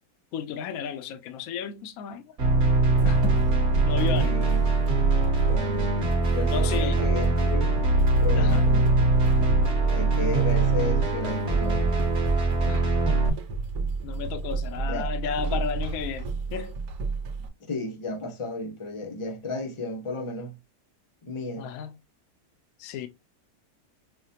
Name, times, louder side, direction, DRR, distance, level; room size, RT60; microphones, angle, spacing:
voice 1, 0.3-2.4 3.0-3.4 3.8-4.4 6.5-7.0 8.3-8.7 12.6-12.9 14.0-16.8 21.6-21.9 22.8-23.1, left 8 dB, 70° left, 1.0 m, -33 dB
sound 1, 2.4-13.3, right 2 dB, 50° right, 1.2 m, -22 dB
sound 2, 3.0-17.5, right 4 dB, 80° right, 1.3 m, -32 dB
voice 2, 4.1-4.6 5.4-5.9 6.2-7.8 8.2-9.0 9.9-12.0 14.8-15.1 17.4-20.5 21.2-21.7, left 2 dB, 35° left, 0.5 m, -34 dB
5.7 x 2.1 x 2.7 m
omnidirectional pair, 1.6 m